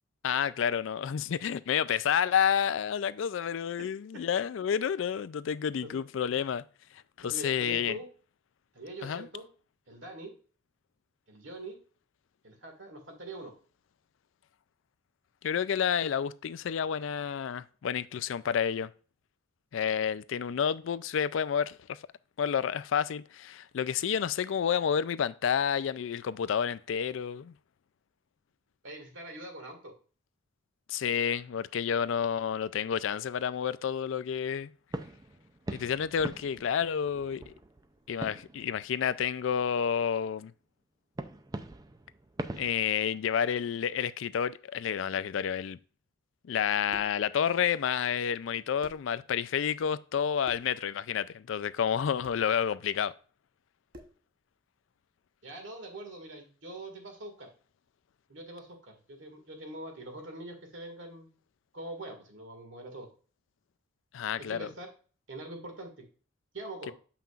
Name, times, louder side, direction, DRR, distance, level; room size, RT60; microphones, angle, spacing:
voice 1, 0.2-6.6 7.2-8.0 9.0-9.3 15.4-18.9 19.7-22.0 22.4-27.5 30.9-34.7 35.7-37.5 38.1-40.5 42.5-45.8 46.4-53.1 64.1-64.7, left 8 dB, 70° left, 0.4 m, -30 dB
voice 2, 7.2-8.1 8.7-9.5 9.9-10.3 11.3-11.8 12.4-13.5 28.8-29.9 55.4-57.5 58.3-61.3 61.7-63.1 64.4-64.9 65.3-65.9 66.5-66.9, right 1 dB, 70° right, 2.0 m, -43 dB
sound 1, 34.9-39.4 39.9-40.0 41.1-42.7, right 1 dB, 20° right, 0.4 m, -42 dB
sound 2, 46.9-47.2 48.4-48.5 48.8-49.1 50.4-50.8 52.2-52.5 53.9-54.3, equal, 45° right, 0.9 m, -51 dB
7.0 x 5.8 x 2.4 m
head